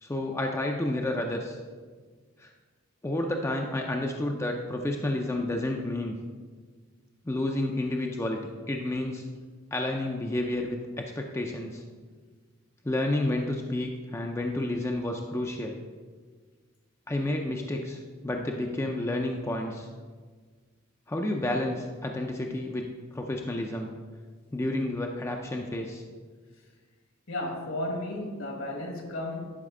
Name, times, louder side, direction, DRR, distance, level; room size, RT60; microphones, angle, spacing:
voice 1, 0.0-1.6 2.4-2.5 3.0-6.1 7.3-9.2 9.7-11.8 12.8-15.8 17.1-19.9 21.1-22.9 23.1-23.9 24.5-26.0, left 1 dB, 15° left, 0.4 m, -30 dB
voice 2, 27.3-29.4, left 1 dB, 65° left, 1.4 m, -33 dB
11.0 x 4.9 x 3.7 m
head